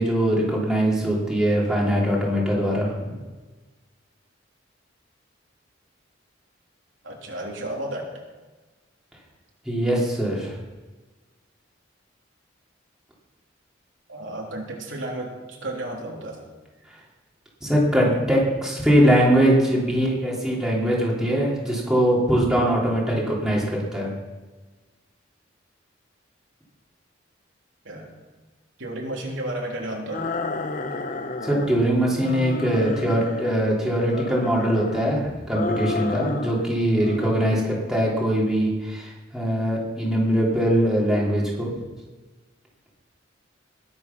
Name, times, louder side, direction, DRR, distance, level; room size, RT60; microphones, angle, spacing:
voice 1, 0.0-3.1 9.7-10.5 17.6-24.1 31.4-41.7, equal, 5° right, -5 dB, 3.6 m, -22 dB
voice 2, 7.0-8.2 14.1-16.4 27.8-28.1 28.8-30.3, right 1 dB, 80° right, -1 dB, 3.4 m, -32 dB
sound 1, 30.1-31.8 32.2-33.6 34.0-35.1 35.5-36.7 37.0-37.7, left 3 dB, 40° left, 0.9 m, -31 dB
21.0 x 8.7 x 6.1 m, 1.3 s
head